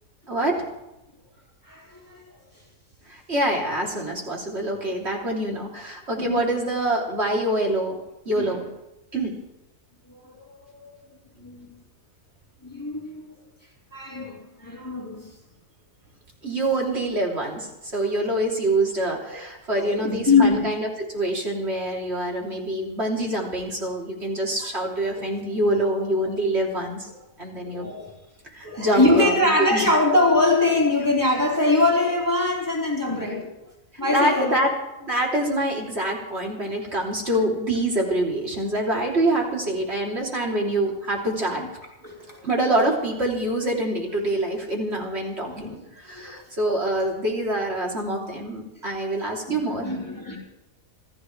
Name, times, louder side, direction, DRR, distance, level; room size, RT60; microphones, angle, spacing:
voice 1, 0.3-0.6 3.1-8.0 8.3-8.6 9.1-9.3 16.4-27.1 27.4-27.9 28.5-29.9 34.1-34.7 35.0-41.6 42.4-49.9, right 1 dB, 45° right, -2 dB, 3.6 m, -25 dB
voice 2, 1.6-2.2 6.2-6.4 8.4-8.6 10.1-10.9 11.4-11.7 12.6-13.3 13.9-15.3 19.3-19.4 19.7-20.6 24.6-24.7 27.6-28.1 28.6-33.5 34.0-34.6 41.6-41.7 42.0-42.4 45.5-45.7 46.1-46.3 49.2-50.4, left 2 dB, 15° left, -4 dB, 3.9 m, -23 dB
27.0 x 13.5 x 3.3 m, 0.93 s
omnidirectional pair, 1.5 m